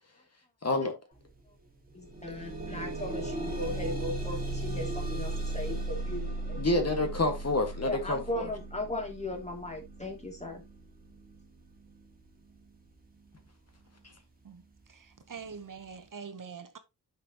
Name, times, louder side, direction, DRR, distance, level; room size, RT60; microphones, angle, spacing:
voice 1, 0.6-1.0 6.6-8.5, left 2 dB, 35° left, 1.7 m, -28 dB
sound 1, 1.2-1.3 1.7-12.7 13.5-13.6 14.0-14.1, right 2 dB, 20° right, 2.0 m, -37 dB
voice 2, 1.9-6.9 7.8-10.6, left 1 dB, 15° left, 2.6 m, -37 dB
voice 3, 14.9-16.8, right 6 dB, 50° right, 1.0 m, -44 dB
9.7 x 6.1 x 2.9 m
wide cardioid pair, 135°, 41 cm